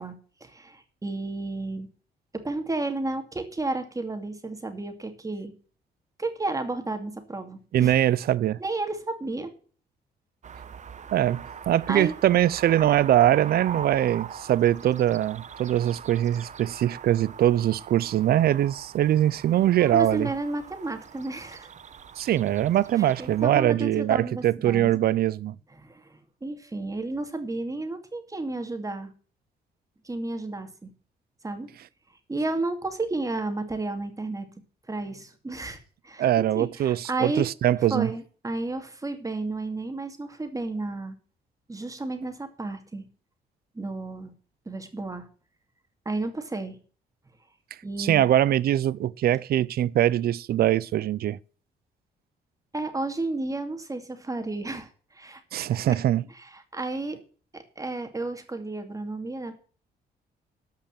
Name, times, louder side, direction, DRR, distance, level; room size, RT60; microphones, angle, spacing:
voice 1, 0.0-1.9 2.3-5.5 6.2-7.9 8.6-9.5 11.9-12.1 19.8-21.7 23.0-25.0 25.8-29.1 30.0-30.9 31.4-31.7 32.3-34.5 34.9-35.8 36.0-36.3 36.6-37.5 37.9-41.2 41.7-43.1 43.7-44.3 44.7-45.3 46.1-46.8 47.8-48.3 52.7-55.4 55.7-55.8 56.4-57.2 57.5-59.6, right 2 dB, 20° right, 2.4 m, -32 dB
voice 2, 7.7-8.6 11.1-20.3 22.2-25.6 36.2-38.1 48.0-51.4 55.5-56.2, right 12 dB, 65° right, 0.6 m, -22 dB
sound 1, 10.4-23.5, right 7 dB, 45° right, 1.0 m, -42 dB
13.5 x 5.6 x 7.5 m
cardioid pair, 90°, 17 cm